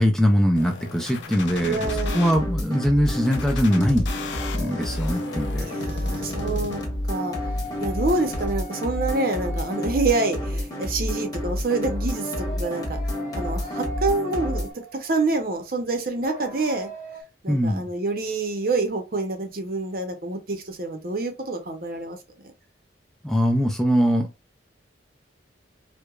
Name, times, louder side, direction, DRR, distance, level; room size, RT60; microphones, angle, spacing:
voice 1, 0.0-4.1 4.6-5.7 17.5-17.9 23.2-24.3, equal, ahead, 0.4 m, -22 dB
sound 1, 0.6-2.3 3.1-7.1 7.6-8.5, left 4 dB, 75° left, 0.6 m, -37 dB
voice 2, 1.6-2.2 5.6-6.8 7.1-7.4 7.8-13.0 13.3-16.9 17.4-22.2, right 3 dB, 50° right, 0.7 m, -27 dB
sound 2, 1.8-14.7, left 1 dB, 20° left, 1.2 m, -29 dB
sound 3, 7.2-10.6 11.8-15.3 16.2-17.2, equal, 40° left, 1.4 m, -39 dB
4.7 x 2.2 x 2.4 m
head